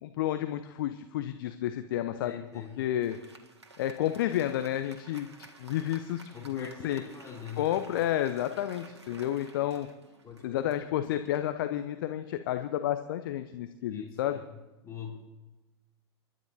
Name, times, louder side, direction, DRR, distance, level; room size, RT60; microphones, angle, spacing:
voice 1, 0.0-3.2 3.8-5.3 5.6-7.0 7.6-9.9 10.4-14.4, left 12 dB, 50° left, 9 dB, 0.8 m, -31 dB
voice 2, 2.2-2.8 6.3-7.7 10.2-10.7 13.9-14.5 14.8-15.2, left 7 dB, 20° left, -1 dB, 2.9 m, -43 dB
Applause, 2.5-12.3, right 3 dB, 75° right, 1.8 m, -54 dB
30.0 x 12.5 x 2.8 m, 1.1 s
figure-of-eight pair, 95°, 14 cm